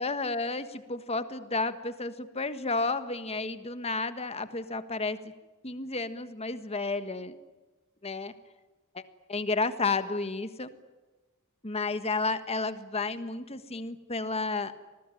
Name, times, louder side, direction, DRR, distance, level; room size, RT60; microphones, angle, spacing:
voice 1, 0.0-5.2 5.6-7.4 8.0-8.3 8.9-9.0 9.3-10.7 11.6-14.8, left 3 dB, 30° left, 11 dB, 1.5 m, -31 dB
26.0 x 20.0 x 9.9 m, 1.2 s
head